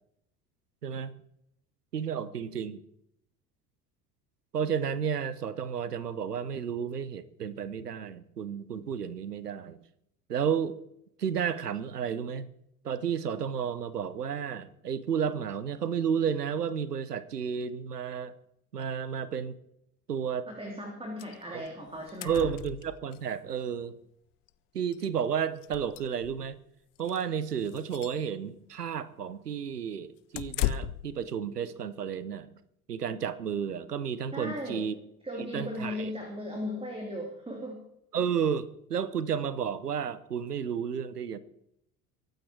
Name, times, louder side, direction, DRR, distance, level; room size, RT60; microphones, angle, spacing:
voice 1, 0.8-1.1 1.9-2.8 4.5-9.8 10.3-10.8 11.2-12.5 12.8-18.3 18.7-19.6 20.1-20.5 21.5-21.6 22.2-23.9 24.7-26.6 27.0-32.5 32.9-34.9 35.4-36.1 38.1-41.4, right 7 dB, 85° right, 17 dB, 1.0 m, -32 dB
voice 2, 20.5-22.4 34.3-34.8 35.2-37.8, left 1 dB, 10° right, 2 dB, 3.3 m, -37 dB
sound 1, 21.2-21.4 21.7-21.8 21.9-23.2 24.5-24.6 24.9-25.1 25.6-26.5 27.0-27.2 27.7-28.2 30.3-31.2, left 14 dB, 45° left, 0.8 m, -35 dB
23.0 x 9.3 x 4.7 m, 0.76 s
figure-of-eight pair, 70°, 46 cm